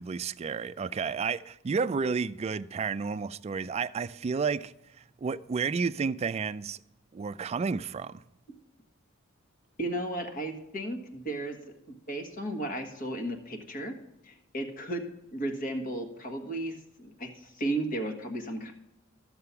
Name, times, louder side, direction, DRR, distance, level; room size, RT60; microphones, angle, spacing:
voice 1, 0.0-4.7 5.2-6.8 7.1-8.2, right 5 dB, 30° right, 0.3 m, -31 dB
voice 2, 9.8-11.7 12.1-13.9 14.2-15.0 15.3-18.7, right 1 dB, 45° left, 1.5 m, -34 dB
13.0 x 6.8 x 5.7 m
head